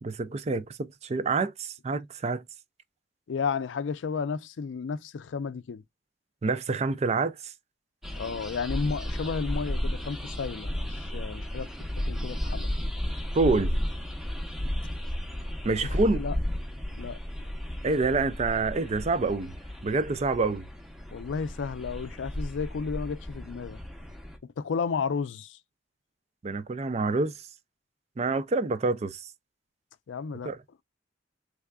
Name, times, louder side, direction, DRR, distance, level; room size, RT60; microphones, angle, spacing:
voice 1, 0.0-2.4 6.4-7.5 13.3-13.7 15.6-16.2 17.8-19.5 19.8-20.6 26.4-27.3 28.2-29.3 30.4-30.6, right 3 dB, 35° right, 0.4 m, -27 dB
voice 2, 3.3-5.8 8.2-11.7 12.1-12.7 15.8-16.4 17.0-17.5 21.1-23.8 24.6-25.6 30.1-30.5, left 5 dB, 80° left, 0.4 m, -33 dB
sound 1, 8.0-24.4, equal, ahead, 0.7 m, -34 dB
3.5 x 3.4 x 2.2 m
head